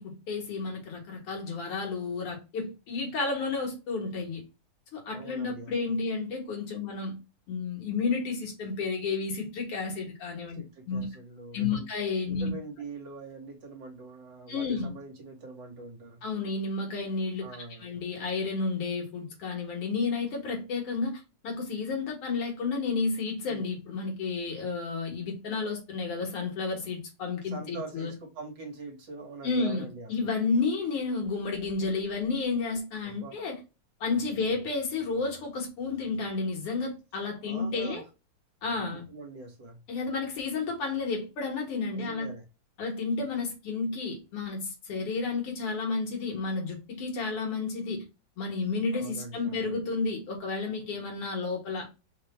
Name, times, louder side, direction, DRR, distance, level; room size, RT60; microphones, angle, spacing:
voice 1, 0.0-4.4 4.9-7.2 7.5-10.6 10.9-11.1 11.5-12.5 14.5-14.9 16.2-17.5 17.8-28.1 29.4-33.6 34.0-38.0 38.6-39.0 39.9-42.3 42.8-48.0 48.4-51.9, left 4 dB, 85° left, 2.4 m, -31 dB
voice 2, 5.1-5.9 10.5-11.9 12.3-16.2 17.4-17.9 23.5-23.6 27.4-30.3 33.0-33.3 34.3-34.6 37.4-38.0 38.7-39.8 41.9-42.4 48.9-49.8, right 3 dB, 60° right, 1.8 m, -44 dB
4.8 x 2.3 x 4.1 m
omnidirectional pair, 2.4 m